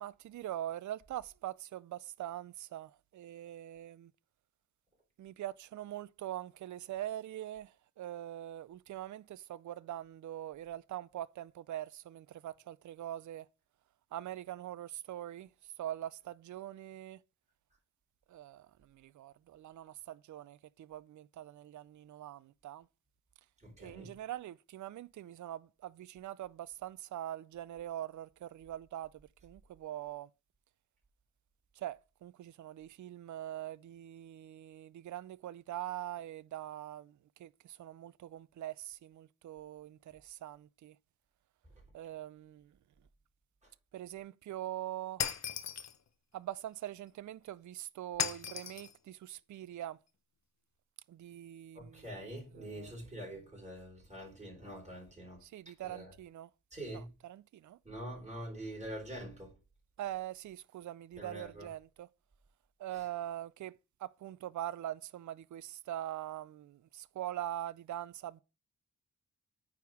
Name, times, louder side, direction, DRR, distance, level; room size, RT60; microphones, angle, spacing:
voice 1, 0.0-1.5 2.2-2.4 2.7-2.8 3.4-3.6 5.4-5.5 5.8-7.6 8.0-8.6 8.9-9.1 9.7-11.3 11.7-11.8 13.0-13.4 14.1-15.4 15.8-16.1 16.5-17.1 20.3-20.4 22.2-22.3 22.7-22.8 24.2-24.5 24.8-25.1 25.4-25.6 26.2-26.5 27.1-28.1 28.7-29.1 29.8-30.2 31.8-31.9 33.3-33.7 35.1-37.0 38.6-38.7 39.5-39.7 40.4-40.5 42.0-42.3 44.1-45.2 46.8-46.9 48.0-48.9 49.5-49.9 55.5-56.0 60.0-60.5 61.2-61.8 62.8-63.7 64.2-64.9 65.5-65.6 65.9-66.4 67.2-68.1, right 12 dB, 60° right, 0.4 m, -40 dB
voice 2, 23.6-24.1 51.7-55.4 55.8-56.1 56.7-57.1 57.8-59.5 61.2-61.7 62.9-63.1, right 1 dB, 20° right, 4.1 m, -45 dB
Shatter, 45.2-46.0 48.2-48.9, left 8 dB, 55° left, 0.7 m, -36 dB
9.2 x 3.6 x 6.1 m
wide cardioid pair, 130°, 33 cm